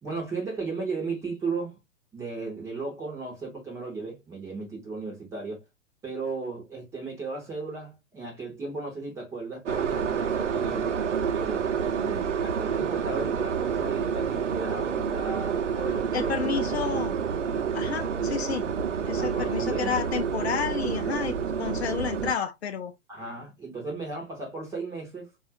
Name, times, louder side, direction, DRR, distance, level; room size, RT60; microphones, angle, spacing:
voice 1, 0.0-1.8 2.1-5.6 6.0-10.9 11.3-16.9 19.1-20.0 23.1-25.3, right 3 dB, 10° right, 0.6 m, -35 dB
sound 1, 9.7-22.3, right 7 dB, 65° right, 0.6 m, -28 dB
voice 2, 16.1-17.2 17.7-18.7 19.0-22.9, left 7 dB, 55° left, 0.6 m, -30 dB
3.8 x 2.4 x 2.7 m
figure-of-eight pair, 115°, 39 cm